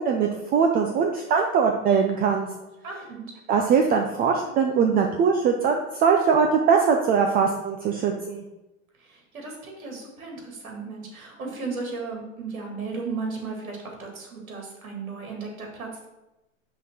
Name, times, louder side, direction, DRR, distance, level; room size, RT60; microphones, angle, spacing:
voice 1, 0.0-2.5 3.5-8.4, right 6 dB, 25° right, 3 dB, 0.5 m, -21 dB
voice 2, 2.8-3.3 9.0-16.1, right 4 dB, 90° right, 0 dB, 2.2 m, -35 dB
6.0 x 3.8 x 5.9 m, 0.97 s
hypercardioid pair, 115°, 41 cm